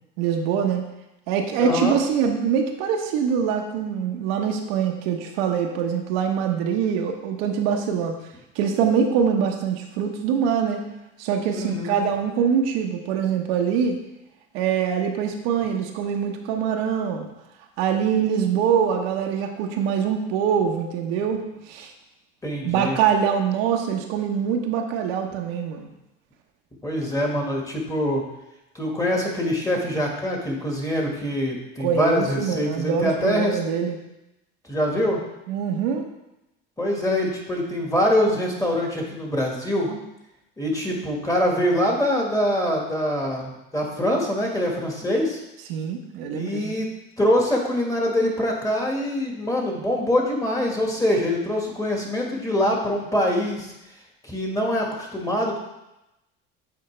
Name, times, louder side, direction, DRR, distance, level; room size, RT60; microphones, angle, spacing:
voice 1, 0.2-0.8 1.3-8.1 8.6-10.8 11.2-14.0 14.5-17.3 17.8-21.9 22.6-25.9 31.8-34.0 35.5-36.1 39.9-40.0 45.7-46.7, right 7 dB, 80° right, 3 dB, 0.9 m, -24 dB
voice 2, 1.6-2.0 11.5-12.0 22.4-23.0 26.8-28.2 28.7-33.6 34.7-35.2 36.8-39.9 40.6-45.4 46.3-46.9 47.2-53.7 54.2-55.6, left 1 dB, 10° left, -1 dB, 1.6 m, -24 dB
8.0 x 4.1 x 3.2 m, 0.93 s
supercardioid pair, 90°, 29 cm